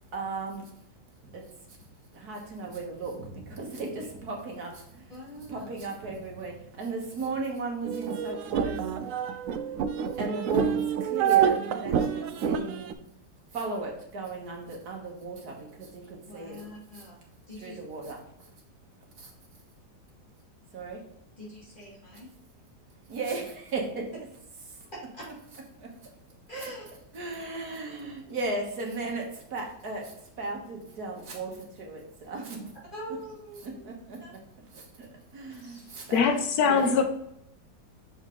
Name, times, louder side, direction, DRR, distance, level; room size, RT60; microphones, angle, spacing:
voice 1, 0.1-0.7 1.2-1.4 1.7-1.8 2.1-5.1 5.4-9.1 10.1-13.0 13.5-16.6 16.9-17.1 17.6-18.5 19.2-19.3 20.7-21.0 23.1-24.0 24.7-24.9 25.8-26.1 26.6-26.7 27.1-32.7 33.6-34.2 34.7-36.3 36.7-36.9, right 3 dB, 60° right, 0 dB, 2.0 m, -36 dB
voice 2, 5.1-5.7 16.2-17.2 17.5-17.8 21.4-22.3 25.1-25.2 26.5-26.8 32.9-33.8 34.2-34.3, equal, 25° left, -7 dB, 2.9 m, -43 dB
sound 1, 7.8-12.9, right 8 dB, 80° right, 0.7 m, -27 dB
voice 3, 36.1-37.0, left 5 dB, 60° left, 5 dB, 1.3 m, -22 dB
6.3 x 5.1 x 3.9 m, 0.75 s
omnidirectional pair, 1.9 m